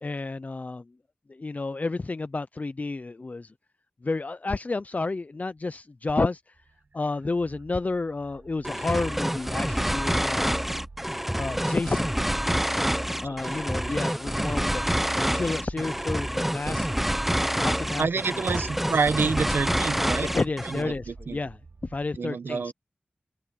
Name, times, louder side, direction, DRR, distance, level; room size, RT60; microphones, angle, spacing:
voice 1, 0.0-0.8 1.3-3.5 4.0-6.4 6.9-10.5 11.4-12.2 13.2-14.8 15.1-16.9 17.4-18.1 20.3-21.6 21.8-22.7, left 3 dB, 45° left, 0.6 m, -30 dB
sound 1, 6.5-22.1, right 3 dB, 55° right, 1.4 m, -48 dB
sound 2, 8.6-20.9, equal, 5° right, 0.7 m, -27 dB
voice 2, 16.6-17.0 18.0-20.3 20.6-21.4 22.2-22.7, right 5 dB, 85° right, 0.9 m, -28 dB
wide cardioid pair, 55°, 4 cm